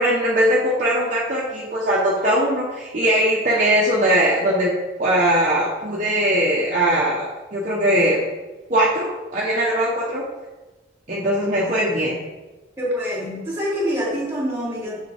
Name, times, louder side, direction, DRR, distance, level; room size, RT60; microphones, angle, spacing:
voice 1, 0.0-4.7 5.0-8.2 8.7-10.2 11.1-12.2, right 1 dB, 40° right, -5 dB, 0.9 m, -20 dB
voice 2, 12.8-15.0, equal, 15° right, -5 dB, 2.5 m, -25 dB
6.7 x 6.5 x 3.4 m, 1.1 s
head